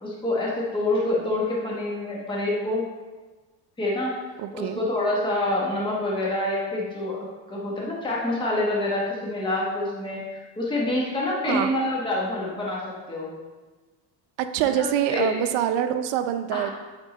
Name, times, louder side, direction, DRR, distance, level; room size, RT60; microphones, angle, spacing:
voice 1, 0.0-2.9 3.8-4.1 4.5-13.3 14.8-15.4 16.5-16.7, left 1 dB, 10° left, -4 dB, 1.1 m, -27 dB
voice 2, 4.4-4.8 11.5-11.7 14.5-16.7, right 10 dB, 70° right, 8 dB, 0.7 m, -25 dB
8.9 x 3.7 x 4.1 m, 1.3 s
cardioid pair, 150°, 46 cm